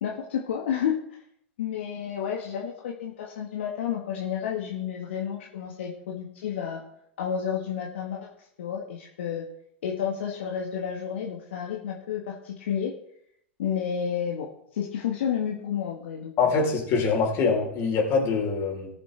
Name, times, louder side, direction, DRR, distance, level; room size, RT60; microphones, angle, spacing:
voice 1, 0.0-1.2 1.6-6.8 7.2-9.5 9.8-12.9 13.6-16.6, left 8 dB, 70° left, 0 dB, 1.6 m, -31 dB
voice 2, 16.4-18.9, left 4 dB, 40° left, -1 dB, 4.0 m, -24 dB
19.0 x 6.8 x 3.4 m, 0.71 s
hypercardioid pair, 95°, 6 cm